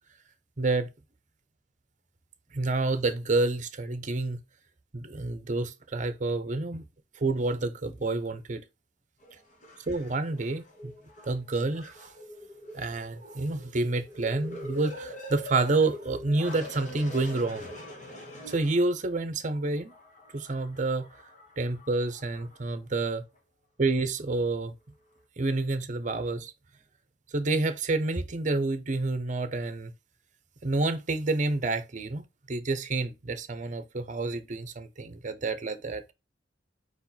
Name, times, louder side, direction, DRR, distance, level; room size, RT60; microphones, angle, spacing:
voice 1, 0.6-0.9 2.5-4.4 4.9-6.8 7.2-8.6 9.9-10.9 11.2-12.1 12.7-17.8 18.5-19.9 20.3-21.1 21.6-23.2 23.8-24.7 25.4-26.5 27.3-29.9 30.6-36.0, right 3 dB, 45° right, 0.7 m, -29 dB
sound 1, 9.2-19.1 19.7-22.7 23.4-23.5, equal, 45° left, 1.5 m, -45 dB
4.9 x 4.3 x 2.2 m
head